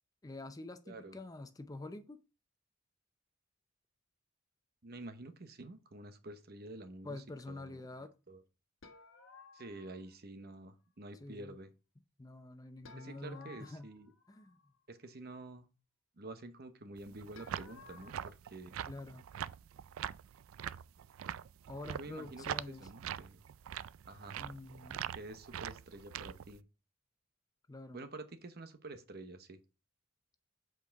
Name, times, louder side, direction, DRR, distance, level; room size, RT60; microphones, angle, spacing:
voice 1, 0.2-2.2 7.0-8.1 11.2-11.6 12.2-13.9 14.3-14.7 18.9-19.2 21.7-22.9 24.4-25.2 27.7-28.0, left 2 dB, 15° left, 0.5 m, -47 dB
voice 2, 0.9-1.2 4.8-7.8 8.3-8.4 9.5-11.7 13.0-14.1 14.9-15.7 16.2-18.8 22.0-23.4 24.1-24.4 25.1-26.6 27.9-29.6, right 2 dB, 50° right, 0.9 m, -49 dB
sound 1, 8.8-10.1 12.8-14.8 17.3-18.1, left 5 dB, 75° left, 1.3 m, -57 dB
sound 2, 17.0-26.6, right 9 dB, 85° right, 0.4 m, -43 dB
8.2 x 4.7 x 4.6 m
head